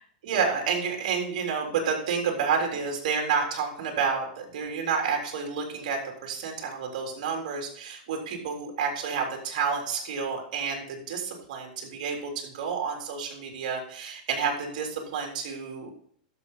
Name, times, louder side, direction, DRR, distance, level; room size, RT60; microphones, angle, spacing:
voice 1, 0.2-15.9, right 6 dB, 60° right, 1 dB, 3.6 m, -30 dB
12.0 x 7.0 x 3.9 m, 0.62 s
supercardioid pair, 155°, 5 cm